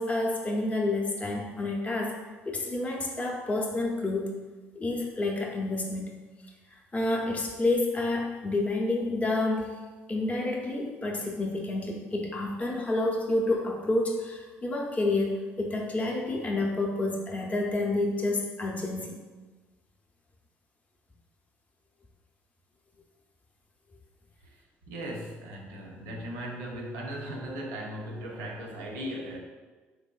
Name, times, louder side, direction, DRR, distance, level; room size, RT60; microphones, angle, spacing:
voice 1, 0.0-2.2 2.5-4.4 4.8-6.2 6.9-9.7 10.1-19.2, left 2 dB, 25° left, -1 dB, 0.6 m, -29 dB
voice 2, 24.9-29.4, right 1 dB, 80° right, 0 dB, 0.6 m, -37 dB
3.6 x 3.3 x 2.3 m, 1.3 s
hypercardioid pair, 60°, 6 cm